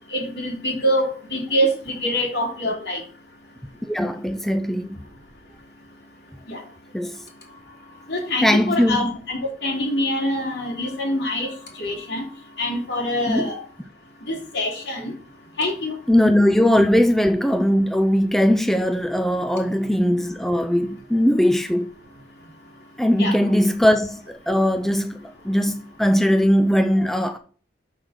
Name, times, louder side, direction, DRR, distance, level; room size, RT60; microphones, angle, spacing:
voice 1, 0.1-3.0 6.5-6.6 8.1-11.5 11.8-12.2 12.6-13.6 14.3-15.1 15.6-15.9 23.2-23.3, equal, 70° left, 3.1 m, -25 dB
voice 2, 3.8-5.0 6.9-7.2 8.4-9.1 13.3-13.5 16.1-21.9 23.0-27.4, equal, ahead, 0.4 m, -20 dB
6.5 x 5.9 x 6.3 m
head